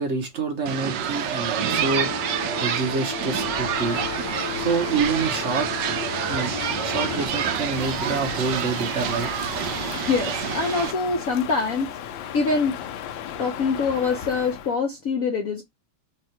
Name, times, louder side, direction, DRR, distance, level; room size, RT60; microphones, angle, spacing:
voice 1, 0.0-4.0 4.5-5.7 6.3-6.5 6.8-9.3, right 4 dB, 45° right, 1.1 m, -27 dB
sound 1, 0.7-10.9, right 8 dB, 70° right, 1.2 m, -28 dB
sound 2, 1.5-7.3, left 6 dB, 35° left, 0.4 m, -35 dB
Crow, 3.3-14.8, left 8 dB, 85° left, 1.4 m, -36 dB
voice 2, 10.0-11.9 12.3-12.8 13.4-15.6, left 4 dB, 60° left, 0.9 m, -24 dB
3.6 x 2.5 x 4.4 m
omnidirectional pair, 2.1 m